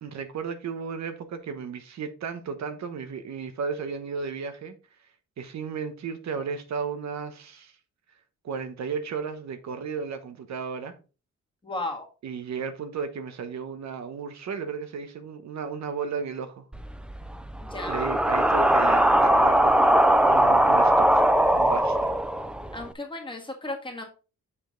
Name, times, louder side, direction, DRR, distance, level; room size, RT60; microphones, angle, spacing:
voice 1, 0.0-4.7 5.4-7.7 8.4-10.9 12.2-16.6 17.9-21.3 21.5-22.1, right 6 dB, 65° right, 1.0 m, -34 dB
voice 2, 11.6-12.0 17.6-18.1 22.7-24.0, left 2 dB, 15° left, 1.7 m, -34 dB
sound 1, 16.7-22.9, right 1 dB, 5° right, 0.4 m, -21 dB
7.1 x 5.1 x 3.8 m
wide cardioid pair, 145°, 30 cm